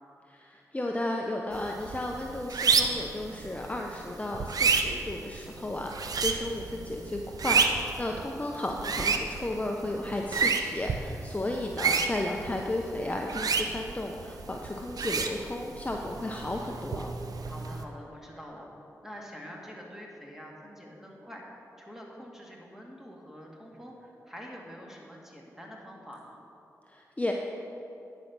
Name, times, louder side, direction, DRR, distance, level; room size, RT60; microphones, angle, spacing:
voice 1, 0.3-17.1 26.9-27.3, left 1 dB, 20° left, 1 dB, 0.7 m, -34 dB
sound 1, 1.5-17.8, right 5 dB, 70° right, 0.6 m, -31 dB
voice 2, 8.1-8.6 17.4-18.7 19.0-21.4 21.8-26.4, equal, 5° right, -2 dB, 2.2 m, -46 dB
10.5 x 5.4 x 6.1 m, 2.8 s
cardioid pair, 45°, 7 cm